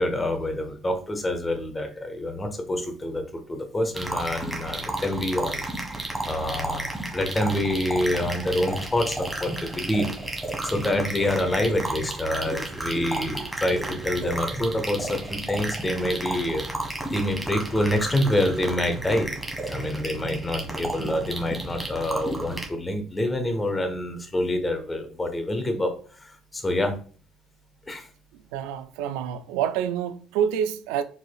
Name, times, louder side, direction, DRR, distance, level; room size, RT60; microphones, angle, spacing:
voice 1, 0.0-5.7 6.2-10.1 10.4-16.6 17.0-19.3 19.7-26.9 27.9-28.1, left 1 dB, 20° left, 1.1 m, -27 dB
sound 1, 3.9-22.7, right 1 dB, 5° right, 1.5 m, -32 dB
voice 2, 28.5-31.0, right 9 dB, 85° right, 0.3 m, -27 dB
4.7 x 4.0 x 2.3 m
supercardioid pair, 70°, 0 cm